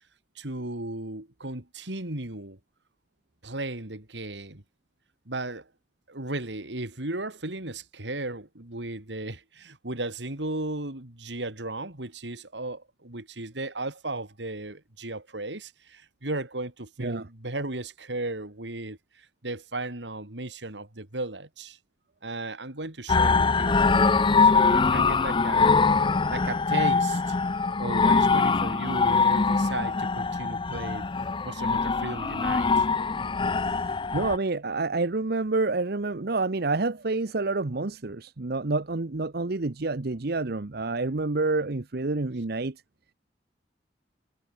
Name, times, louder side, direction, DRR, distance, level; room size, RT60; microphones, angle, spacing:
voice 1, 0.4-2.6 3.4-4.6 5.3-5.7 6.1-21.8 22.2-25.8 26.3-27.4 27.8-31.1 31.4-32.9, right 2 dB, 85° right, 3.5 m, -35 dB
sound 1, 23.1-34.4, left 4 dB, 30° left, 0.6 m, -23 dB
voice 2, 34.1-42.8, right 3 dB, 65° right, 1.0 m, -28 dB
head